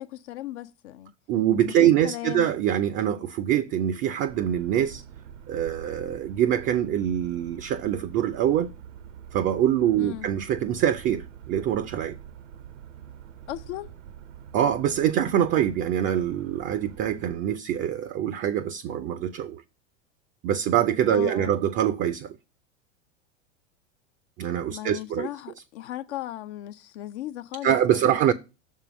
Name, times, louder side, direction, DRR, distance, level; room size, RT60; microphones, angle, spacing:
voice 1, 0.0-1.1 1.7-2.5 10.0-10.3 13.5-13.9 21.1-21.5 24.7-28.2, left 14 dB, 60° left, 0.5 m, -37 dB
voice 2, 1.3-5.0 5.5-8.7 9.3-12.2 14.5-19.6 20.4-22.4 24.4-25.3 27.6-28.3, right 10 dB, 30° right, 0.4 m, -24 dB
sound 1, 4.3-17.4, right 9 dB, 80° right, 0.8 m, -45 dB
6.7 x 3.7 x 6.0 m
hypercardioid pair, 95°, 38 cm